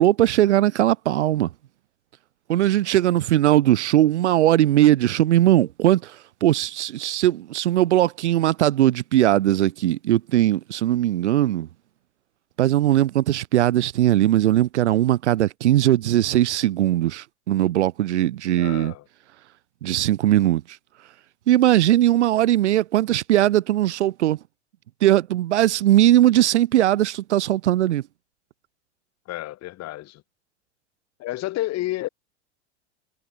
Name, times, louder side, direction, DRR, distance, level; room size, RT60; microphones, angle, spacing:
voice 1, 0.0-1.5 2.5-6.2 6.4-11.7 12.6-18.9 19.8-20.6 21.5-24.4 25.0-28.0, right 13 dB, 75° right, 3.0 m, -19 dB
voice 2, 18.6-19.0 29.3-30.2 31.2-32.1, left 16 dB, 45° left, 4.1 m, -30 dB
hypercardioid pair, 85°, 35 cm